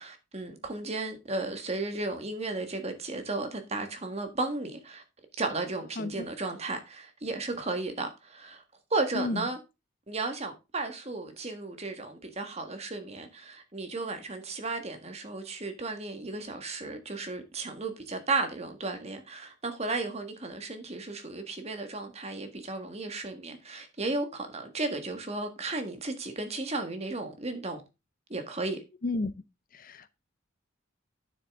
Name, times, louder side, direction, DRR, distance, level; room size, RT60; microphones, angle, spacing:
voice 1, 0.0-5.0 5.4-8.6 8.9-9.6 10.1-27.8 28.3-28.8, right 3 dB, 30° right, 1.6 m, -34 dB
voice 2, 6.0-6.3 9.1-9.5 29.0-29.3 29.7-30.1, left 2 dB, 45° left, 0.6 m, -32 dB
9.3 x 7.4 x 3.6 m
head